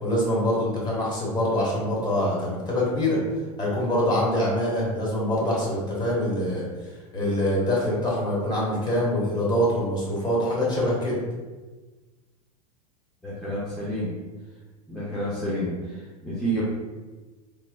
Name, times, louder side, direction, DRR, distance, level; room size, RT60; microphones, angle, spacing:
voice 1, 0.0-3.2 3.6-6.7 7.1-11.2, left 1 dB, 20° left, -5 dB, 1.1 m, -24 dB
voice 2, 13.2-14.1 14.9-16.6, right 1 dB, ahead, -9 dB, 0.6 m, -29 dB
3.1 x 2.1 x 2.3 m, 1.3 s
hypercardioid pair, 95°, 20 cm